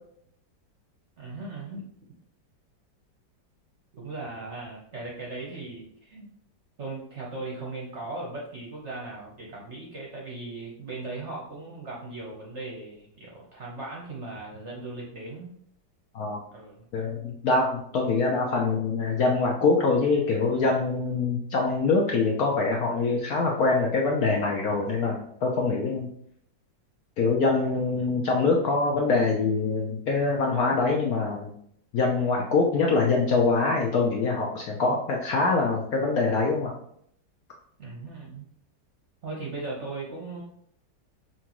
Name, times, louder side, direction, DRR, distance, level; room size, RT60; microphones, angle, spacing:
voice 1, 1.2-1.9 4.0-6.3 6.8-15.5 16.5-16.9 27.9-28.2 37.8-38.5 39.2-40.4, right 3 dB, 50° right, -3 dB, 0.9 m, -38 dB
voice 2, 16.9-26.1 27.2-31.5 31.9-36.7, left 3 dB, 65° left, -1 dB, 0.9 m, -24 dB
5.8 x 2.7 x 2.9 m, 0.67 s
omnidirectional pair, 2.1 m